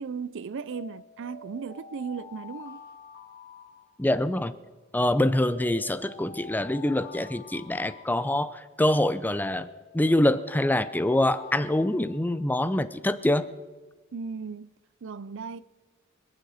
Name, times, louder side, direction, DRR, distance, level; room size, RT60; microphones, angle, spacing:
voice 1, 0.0-2.8 14.1-14.7 15.0-15.6, right 5 dB, 65° right, 0.5 m, -36 dB
Alarm, 0.7-4.4 5.1-8.8 9.5-12.7, left 4 dB, 60° left, 2.5 m, -47 dB
voice 2, 4.0-4.5 4.9-9.7 9.9-13.5, left 1 dB, 10° left, 0.5 m, -25 dB
26.5 x 9.4 x 4.2 m
head